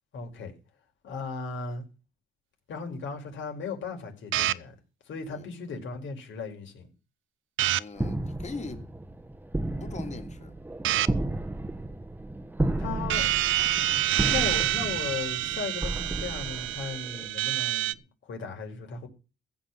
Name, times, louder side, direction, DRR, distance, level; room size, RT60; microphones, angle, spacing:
voice 1, 0.1-0.5 1.0-1.9 2.7-4.7 5.1-6.9 12.8-13.3 14.3-18.0 18.2-19.1, left 5 dB, 70° left, 5.4 m, -36 dB
sound 1, 4.3-4.5 7.6-7.8 10.8-11.1 13.1-17.9, right 14 dB, 80° right, 0.7 m, -27 dB
voice 2, 7.8-8.9 9.8-10.5, left 3 dB, 35° left, 3.1 m, -41 dB
sound 2, 8.0-17.3, right 2 dB, 10° right, 1.0 m, -33 dB
15.5 x 7.3 x 7.4 m
cardioid pair, 90°, 20 cm